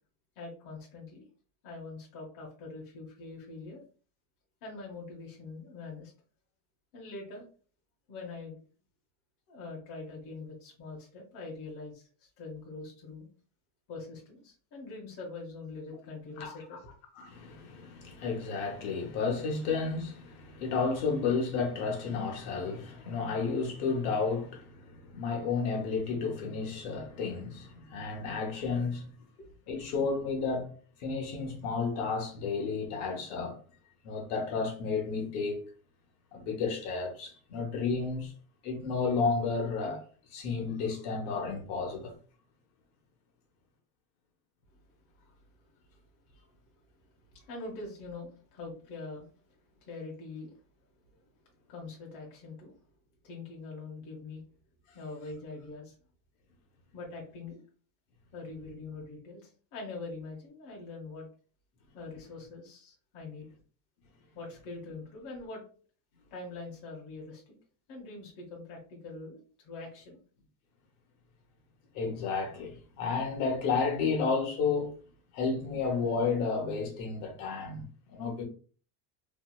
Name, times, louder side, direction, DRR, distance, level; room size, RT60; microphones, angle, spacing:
voice 1, 0.4-1.2 1.6-3.8 4.6-6.1 6.9-7.4 8.1-8.6 9.5-13.3 13.9-16.9 29.3-29.6 44.7-44.8 45.3-45.4 47.0-50.6 51.0-51.2 51.6-52.7 53.2-54.4 54.9-55.9 56.9-57.6 58.3-61.3 61.9-63.5 64.3-65.6 66.3-67.6 67.9-70.2, left 3 dB, 40° left, 0.9 m, -44 dB
voice 2, 16.4-16.8 17.2-29.1 29.7-30.7 31.0-33.6 34.0-35.6 36.3-38.3 38.6-40.0 40.3-42.1 71.9-75.0 75.3-78.4, left 4 dB, 65° left, 1.1 m, -32 dB
3.0 x 2.6 x 2.3 m
cardioid pair, 175°, 49 cm